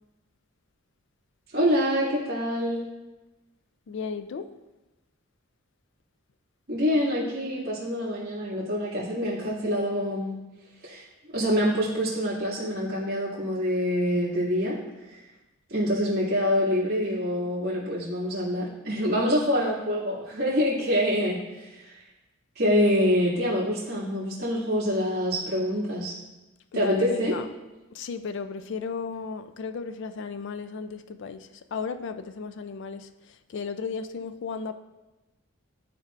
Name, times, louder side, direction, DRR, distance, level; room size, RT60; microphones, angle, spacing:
voice 1, 1.5-2.8 6.7-10.4 10.8-11.0 11.3-14.8 15.7-22.0 22.6-26.1 26.7-27.4, equal, 45° right, -11 dB, 2.1 m, -26 dB
voice 2, 3.9-4.5 26.7-27.5 27.9-33.1 33.5-34.7, left 5 dB, 55° left, 11 dB, 0.3 m, -34 dB
12.5 x 4.2 x 2.5 m, 1.1 s
head